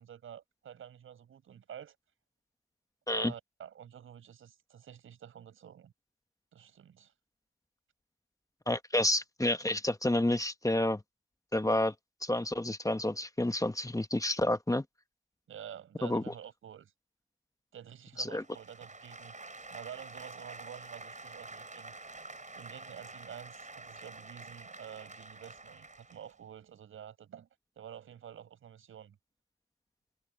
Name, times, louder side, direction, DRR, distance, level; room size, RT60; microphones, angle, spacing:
voice 1, 0.0-2.0 3.1-5.9 6.5-7.1 15.5-16.9 17.7-19.3 19.7-21.9 22.6-27.5 27.8-29.2, right 9 dB, 90° right, 7.2 m, -49 dB
voice 2, 8.7-11.0 11.5-11.9 12.2-14.8 16.0-16.2 18.2-18.4, left 1 dB, 15° left, 1.5 m, -29 dB
sound 1, 18.3-26.3, right 3 dB, 35° right, 6.9 m, -48 dB
supercardioid pair, 40°, 20 cm